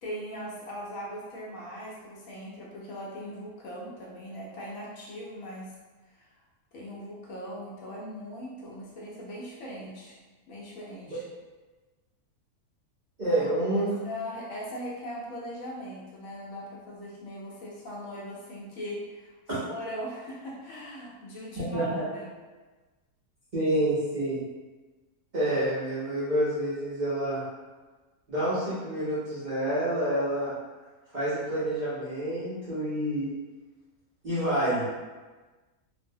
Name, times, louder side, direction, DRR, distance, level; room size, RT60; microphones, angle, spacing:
voice 1, 0.0-5.7 6.1-6.3 6.7-10.2 10.5-11.2 13.3-22.3, equal, 70° left, -4 dB, 0.9 m, -40 dB
voice 2, 13.2-13.9 19.5-19.6 21.7-22.0 23.5-24.4 25.3-27.4 28.3-30.5 31.1-33.3 34.2-34.9, right 1 dB, 50° right, -13 dB, 0.5 m, -28 dB
2.6 x 2.0 x 2.6 m, 1.3 s
omnidirectional pair, 1.6 m